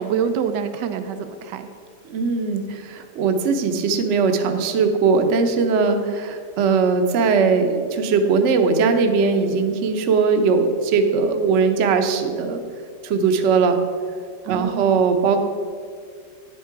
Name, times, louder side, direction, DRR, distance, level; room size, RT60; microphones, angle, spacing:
voice 1, 0.0-1.7 5.9-6.2 14.4-15.0, right 7 dB, 90° right, 9 dB, 1.3 m, -26 dB
voice 2, 2.1-12.6 13.0-13.8 14.5-15.4, right 5 dB, 55° right, 6 dB, 0.9 m, -19 dB
9.1 x 7.5 x 4.6 m, 2.1 s
omnidirectional pair, 1.8 m